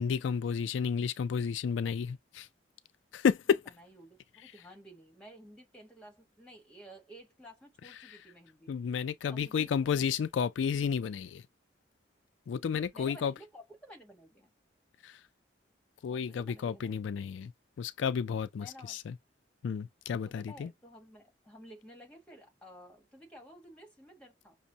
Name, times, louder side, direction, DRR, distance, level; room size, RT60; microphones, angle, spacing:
voice 1, 0.0-2.5 3.1-3.6 8.7-11.4 12.5-13.3 15.0-15.1 16.0-17.5 17.8-19.1 19.6-20.7, left 6 dB, 85° left, 0.3 m, -31 dB
voice 2, 3.5-8.7 9.3-9.7 12.9-14.5 16.1-17.0 18.6-19.0 20.3-24.6, equal, 5° left, 1.3 m, -53 dB
6.0 x 2.1 x 2.7 m
head